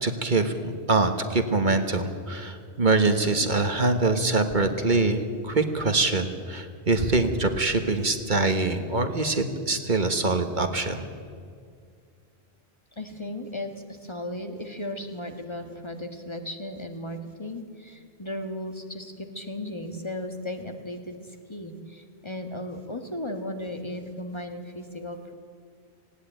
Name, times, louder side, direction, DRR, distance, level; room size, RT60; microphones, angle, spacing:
voice 1, 0.0-11.1, right 3 dB, 50° right, 7 dB, 1.5 m, -24 dB
voice 2, 13.0-25.3, left 1 dB, 25° left, 5 dB, 1.6 m, -36 dB
18.5 x 17.0 x 9.1 m, 2.1 s
omnidirectional pair, 1.0 m